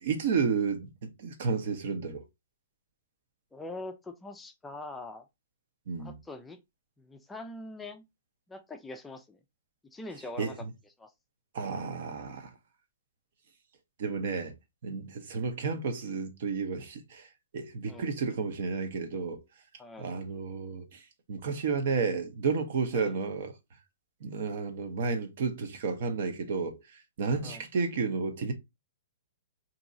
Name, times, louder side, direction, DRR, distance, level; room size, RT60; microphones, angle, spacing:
voice 1, 0.0-2.3 5.9-6.2 10.4-10.7 11.5-12.5 14.0-14.5 14.8-17.3 17.5-19.4 20.0-21.0 21.3-23.6 24.2-28.5, right 5 dB, 60° right, 0.8 m, -32 dB
voice 2, 3.5-5.3 6.0-6.6 7.0-8.0 8.5-9.4 9.9-10.7 11.0-11.1 17.9-18.1 19.8-20.1 22.9-23.1 27.4-27.6, left 2 dB, 10° left, 0.4 m, -43 dB
2.9 x 2.7 x 2.6 m
hypercardioid pair, 140°, 0 cm